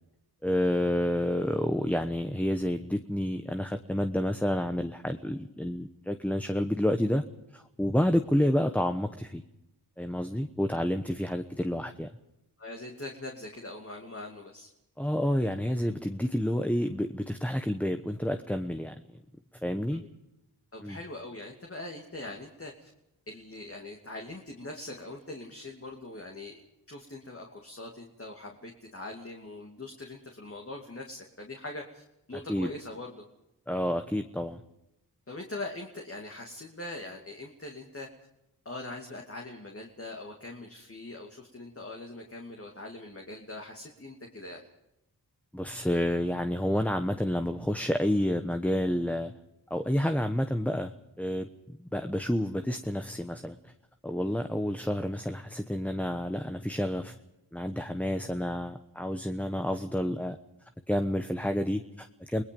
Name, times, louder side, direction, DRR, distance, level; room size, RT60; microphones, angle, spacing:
voice 1, 0.4-7.2 7.5-9.4 10.0-12.1 15.0-19.0 19.6-20.0 20.8-21.0 32.3-32.7 33.7-34.6 45.5-49.3 49.7-53.7 54.0-57.1 57.5-60.4 60.9-62.4, equal, 5° left, 7 dB, 1.1 m, -29 dB
voice 2, 12.6-14.7 19.9-20.1 20.7-22.9 23.3-26.6 26.9-32.0 32.3-33.2 35.3-38.1 38.6-44.6, left 2 dB, 35° left, 1 dB, 2.6 m, -42 dB
29.5 x 19.0 x 5.4 m, 0.88 s
cardioid pair, 60°, 39 cm